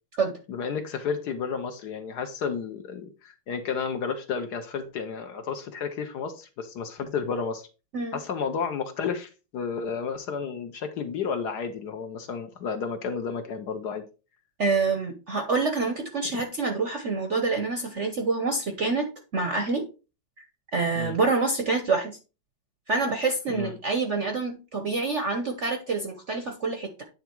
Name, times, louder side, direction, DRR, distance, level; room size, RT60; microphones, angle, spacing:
voice 1, 0.5-7.7 8.1-14.0 20.9-21.2 23.5-23.7, left 6 dB, 65° left, 7 dB, 1.2 m, -32 dB
voice 2, 14.6-19.9 20.7-22.2 22.9-27.0, right 3 dB, 55° right, 6 dB, 0.8 m, -27 dB
9.1 x 3.5 x 4.4 m, 0.32 s
omnidirectional pair, 2.2 m